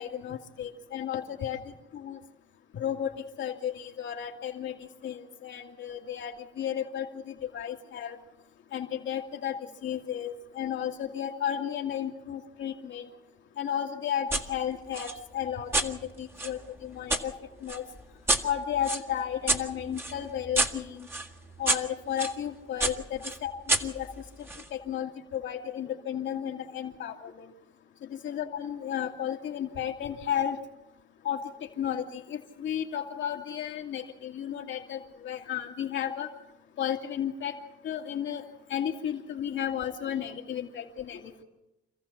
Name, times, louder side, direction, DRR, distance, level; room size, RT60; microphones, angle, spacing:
voice 1, 0.0-1.6 1.9-2.2 2.7-3.1 3.4-4.7 5.0-8.2 8.7-13.1 13.6-17.3 17.6-17.8 18.4-21.1 21.6-23.5 23.8-24.1 24.7-27.5 28.0-30.6 31.2-36.3 36.8-37.6 37.8-38.4 38.7-41.4, left 9 dB, 70° left, 3 dB, 2.5 m, -33 dB
sound 1, 14.3-14.5 14.9-17.2 17.7-22.4 22.8-24.7, right 2 dB, 10° right, 1.8 m, -30 dB
27.5 x 14.5 x 7.2 m, 0.96 s
cardioid pair, 90°, 20 cm